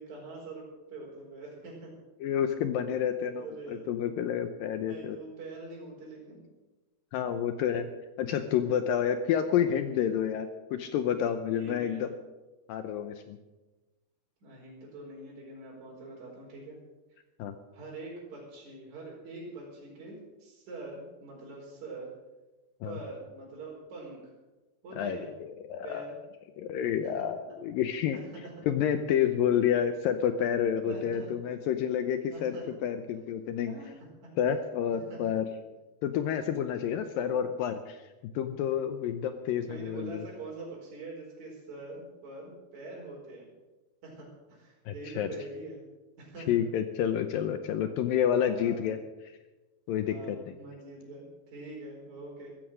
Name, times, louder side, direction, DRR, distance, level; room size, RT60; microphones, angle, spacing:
voice 1, 0.0-1.9 3.3-3.9 4.7-6.4 11.5-12.0 14.4-16.8 17.7-22.1 22.8-24.3 24.8-25.3 25.8-26.2 27.2-27.3 28.1-28.5 29.2-29.3 30.8-31.3 32.3-32.7 33.6-33.9 34.2-34.3 35.1-35.2 36.8-37.5 39.6-43.5 44.0-45.8 46.2-46.5 48.6-49.0 50.1-52.5, right 2 dB, 45° right, -4 dB, 5.6 m, -44 dB
voice 2, 2.2-5.2 7.1-7.9 8.2-12.1 12.7-13.4 17.4-17.5 22.8-23.0 25.0-26.1 26.6-28.2 28.7-33.7 34.4-35.5 36.0-38.0 38.3-40.2 44.9-45.3 46.5-49.0 49.9-50.5, left 9 dB, 75° left, 9 dB, 2.2 m, -29 dB
15.5 x 14.0 x 6.4 m, 1.1 s
omnidirectional pair, 4.7 m